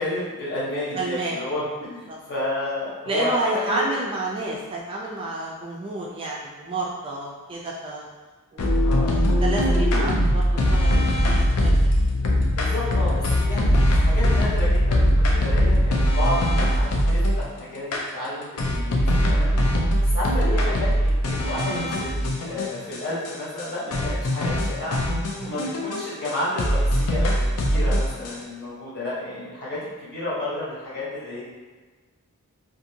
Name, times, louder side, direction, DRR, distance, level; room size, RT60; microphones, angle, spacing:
voice 1, 0.0-3.9 8.8-9.2 12.5-19.5 20.0-31.4, left 1 dB, 45° left, -8 dB, 1.1 m, -31 dB
voice 2, 0.9-1.5 2.1-2.2 3.1-8.1 8.5-11.9 12.6-12.7 13.5-13.6 19.5-19.9 25.4-25.6, right 2 dB, 25° right, -3 dB, 0.3 m, -30 dB
sound 1, 8.6-17.5 17.9-18.0 18.6-23.0 23.3-23.4 23.6-23.7 23.9-26.3 26.6-28.3, equal, 90° left, 0.5 m, -21 dB
2.6 x 2.5 x 2.7 m, 1.4 s
head